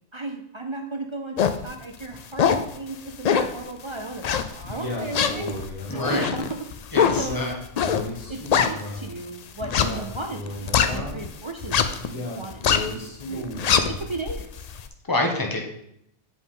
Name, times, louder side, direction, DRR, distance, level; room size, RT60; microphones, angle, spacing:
voice 1, 0.1-5.6 5.9-6.5 7.2-7.5 8.3-8.4 8.7-14.7, right 2 dB, 45° right, 4 dB, 0.3 m, -35 dB
sound 1, 1.4-1.6 2.1-2.7 3.2-3.6 4.2-4.7 5.1-9.1 9.6-11.3 11.6-12.1 12.4-12.9 13.3-14.8, left 7 dB, 65° left, 0.4 m, -23 dB
Male speech man speaking, 4.6-6.5 7.0-9.0 9.6-11.3 12.0-14.0, left 1 dB, 35° left, 1.6 m, -34 dB
voice 2, 5.9-6.2 6.9-7.5 15.1-15.6, left 2 dB, 20° left, 1 dB, 1.0 m, -26 dB
7.7 x 4.7 x 3.8 m, 0.75 s
omnidirectional pair, 1.2 m